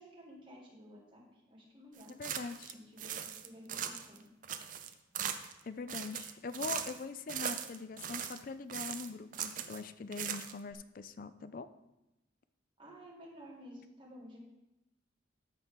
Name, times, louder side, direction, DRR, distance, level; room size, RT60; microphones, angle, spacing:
voice 1, 0.0-2.1 2.7-4.2 12.8-14.4, equal, 25° right, -4 dB, 1.9 m, -53 dB
sound 1, 2.0-2.7 3.0-4.2 4.4-5.6 5.9-7.0 7.3-8.4 8.7-9.8 10.1-10.7, right 9 dB, 45° right, 0.5 m, -39 dB
voice 2, 2.1-2.7 5.6-11.7, left 4 dB, 45° left, 12 dB, 0.4 m, -43 dB
13.5 x 4.5 x 3.6 m, 0.93 s
head